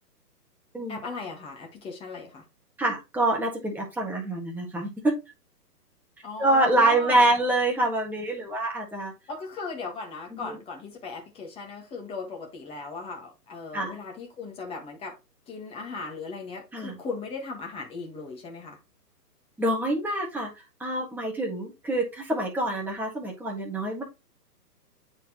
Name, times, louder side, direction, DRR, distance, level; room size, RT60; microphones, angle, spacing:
voice 1, 0.9-2.4 6.2-7.3 9.3-15.1 15.5-18.8, left 4 dB, 10° left, 1.5 m, -37 dB
voice 2, 2.8-5.2 6.4-9.1 10.3-10.6 13.7-13.9 16.7-17.0 19.6-20.5 20.8-24.0, right 2 dB, 5° right, 1.6 m, -26 dB
8.9 x 4.4 x 2.9 m
hypercardioid pair, 145°, 48 cm